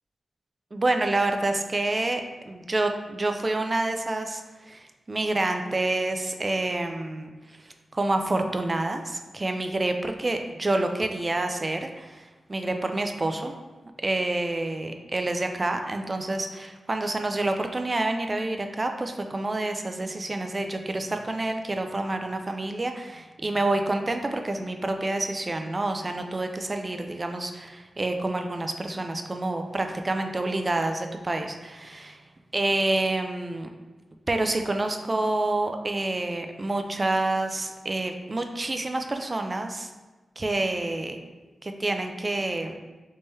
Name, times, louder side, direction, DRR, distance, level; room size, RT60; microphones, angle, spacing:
voice 1, 0.7-7.6 7.9-13.5 14.0-32.2 32.5-33.7 34.3-39.9 40.4-41.2 41.6-42.8, right 2 dB, 30° right, 5 dB, 0.3 m, -28 dB
3.5 x 3.2 x 2.7 m, 1.2 s
wide cardioid pair, 110°, 0 cm